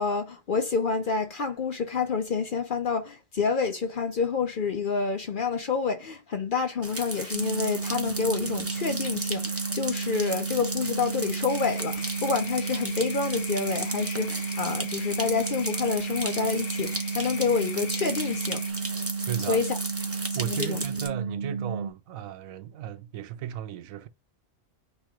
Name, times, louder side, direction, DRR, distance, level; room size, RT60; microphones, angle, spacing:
voice 1, 0.0-18.6 19.5-19.6 20.4-20.8, left 5 dB, 55° left, 0.6 m, -28 dB
sound 1, 6.8-21.1, right 2 dB, 15° right, 0.6 m, -36 dB
sound 2, 7.3-21.9, right 5 dB, 55° right, 0.7 m, -33 dB
sound 3, 11.5-18.7, left 12 dB, 80° left, 1.0 m, -44 dB
voice 2, 19.3-19.6 20.3-24.1, right 10 dB, 85° right, 1.0 m, -34 dB
3.5 x 3.2 x 4.7 m
omnidirectional pair, 1.4 m